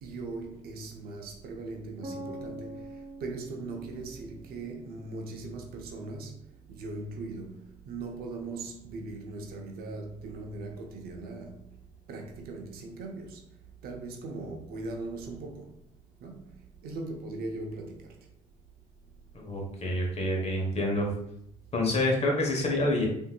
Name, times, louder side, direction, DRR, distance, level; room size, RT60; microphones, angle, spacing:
voice 1, 0.0-2.8 3.2-6.4 6.7-11.6 12.1-13.4 13.8-15.8 16.2-16.5 16.8-18.1, right 3 dB, 65° right, 0.6 m, -39 dB
sound 1, 2.0-5.9, right 1 dB, 40° right, 1.1 m, -45 dB
voice 2, 19.3-21.1 21.7-23.1, left 1 dB, 40° left, 1.1 m, -27 dB
3.7 x 2.7 x 2.2 m
supercardioid pair, 70°, 17 cm